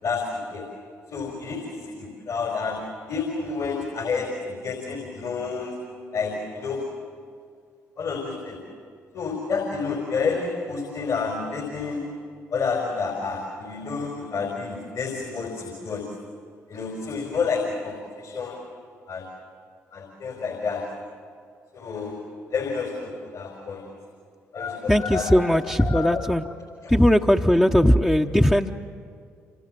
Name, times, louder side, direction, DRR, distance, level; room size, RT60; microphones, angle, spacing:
voice 1, 0.0-0.6 1.1-2.8 3.1-5.7 6.1-6.8 8.0-8.6 9.1-12.0 12.5-16.0 16.7-18.6 19.1-19.3 19.9-20.8 21.7-22.2 22.5-23.9 24.5-26.2 26.8-26.9, left 5 dB, 60° left, 1 dB, 4.7 m, -29 dB
voice 2, 24.9-26.4 26.9-28.7, equal, 5° left, 0 dB, 1.0 m, -19 dB
27.5 x 26.5 x 7.7 m, 2.2 s
hypercardioid pair, 45°, 7 cm